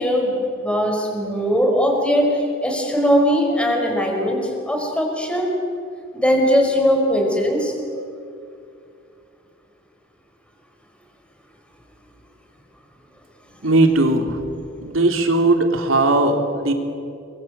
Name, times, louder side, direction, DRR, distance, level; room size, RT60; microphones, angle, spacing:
voice 1, 0.0-5.5 6.1-7.7, equal, 5° left, 1 dB, 5.1 m, -20 dB
voice 2, 13.6-14.5 14.8-16.7, right 2 dB, 85° right, 4 dB, 3.4 m, -18 dB
28.5 x 23.5 x 8.2 m, 2.5 s
head